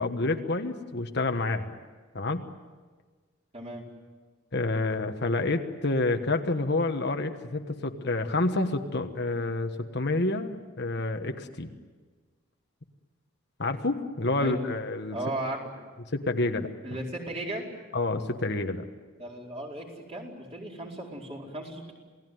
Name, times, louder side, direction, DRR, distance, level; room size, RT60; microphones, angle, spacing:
voice 1, 0.0-1.8 2.1-2.4 4.5-11.7 13.6-15.2 16.1-16.7 17.9-18.8, left 2 dB, 50° left, 6 dB, 1.4 m, -28 dB
voice 2, 3.5-3.8 14.4-14.6 15.1-15.7 16.8-17.7 19.2-21.9, right 1 dB, 30° right, -1 dB, 4.6 m, -36 dB
28.0 x 18.0 x 9.4 m, 1.4 s
head